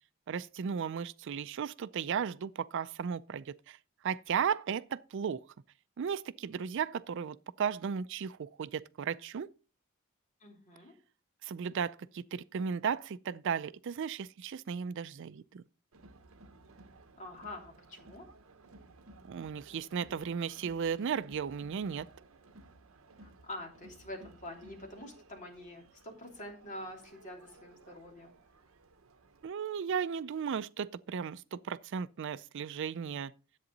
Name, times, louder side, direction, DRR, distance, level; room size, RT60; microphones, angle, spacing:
voice 1, 0.3-3.8 4.0-5.4 6.0-9.5 11.4-15.6 19.2-22.1 29.4-33.3, right 7 dB, 60° right, 0.4 m, -35 dB
voice 2, 10.4-10.9 17.1-18.3 23.2-28.3, left 1 dB, 35° left, 3.1 m, -46 dB
Crowd, 15.9-29.5, right 2 dB, 75° right, 0.8 m, -57 dB
10.5 x 8.1 x 4.0 m
head